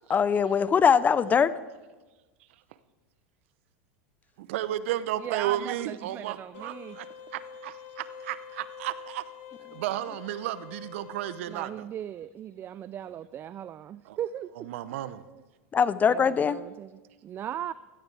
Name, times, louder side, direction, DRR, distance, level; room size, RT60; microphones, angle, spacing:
voice 1, 0.1-1.5 15.7-16.6, left 6 dB, 25° left, 0.5 m, -22 dB
voice 2, 4.4-9.3 9.7-11.9 14.0-14.2 14.6-15.2, right 13 dB, 70° right, 0.7 m, -33 dB
voice 3, 5.2-7.0 11.5-14.7 16.1-17.7, right 10 dB, 30° right, 0.3 m, -38 dB
sound 1, 6.5-11.6, left 7 dB, 60° left, 1.7 m, -46 dB
16.0 x 14.0 x 3.3 m
hypercardioid pair, 110°, 7 cm